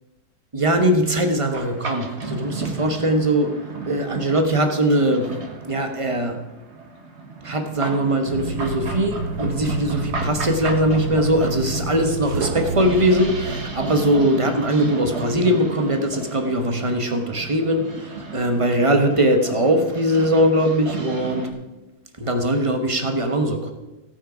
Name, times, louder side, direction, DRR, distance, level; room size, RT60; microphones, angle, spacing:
voice 1, 0.5-3.6 3.8-5.3 5.7-6.4 7.4-21.5 22.2-23.7, right 1 dB, 25° right, 5 dB, 0.8 m, -21 dB
sound 1, 1.5-21.5, right 3 dB, 40° right, 1.4 m, -34 dB
sound 2, 8.3-14.1, right 2 dB, 65° right, 1.3 m, -29 dB
17.0 x 6.0 x 5.0 m, 1.1 s
omnidirectional pair, 2.0 m